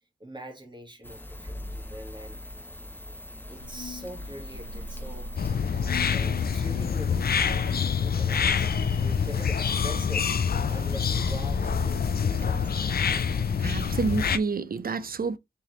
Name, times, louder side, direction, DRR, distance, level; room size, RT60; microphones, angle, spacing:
voice 1, 0.2-2.4 3.5-5.3 5.7-12.7, equal, 25° right, 1.8 m, -43 dB
sound 1, 1.0-14.3, left 1 dB, 10° left, 0.7 m, -42 dB
sound 2, 3.6-12.5, left 2 dB, 80° left, 0.9 m, -43 dB
sound 3, 5.4-14.4, left 6 dB, 60° left, 0.5 m, -26 dB
voice 2, 13.6-15.4, right 4 dB, 55° right, 0.5 m, -28 dB
3.8 x 3.5 x 3.1 m
cardioid pair, 45°, 18 cm